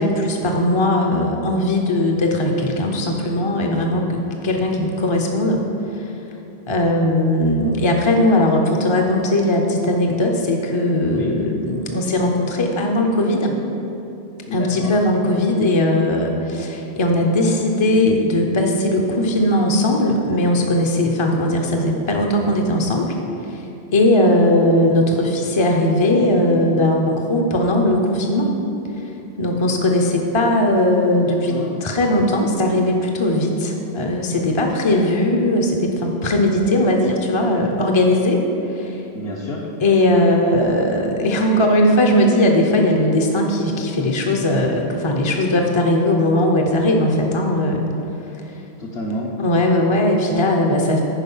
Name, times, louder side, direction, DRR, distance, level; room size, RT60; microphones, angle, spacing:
voice 1, 0.0-5.6 5.9-6.1 6.6-13.5 14.5-23.1 23.5-23.6 23.9-28.5 29.4-31.5 31.8-38.4 38.7-39.0 39.8-47.8 49.4-51.0, left 1 dB, 35° left, 1 dB, 0.6 m, -18 dB
voice 2, 11.0-11.3 14.5-14.9 20.9-21.0 31.2-31.8 39.1-39.6 48.8-49.3, left 1 dB, 65° left, -5 dB, 1.1 m, -30 dB
9.9 x 4.9 x 5.4 m, 3.0 s
omnidirectional pair, 1.2 m